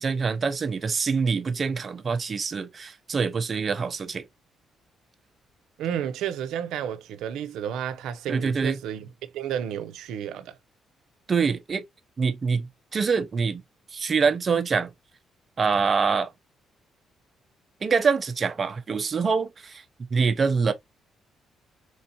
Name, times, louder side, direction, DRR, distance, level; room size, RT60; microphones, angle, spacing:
voice 1, 0.0-4.2 8.3-8.8 11.3-11.8 12.2-13.6 13.9-14.9 15.6-16.3 17.8-19.8 20.1-20.7, right 5 dB, 40° right, 0.8 m, -25 dB
voice 2, 5.8-10.6, right 9 dB, 85° right, 0.6 m, -32 dB
4.5 x 2.8 x 2.6 m
cardioid pair, 90°, 0 cm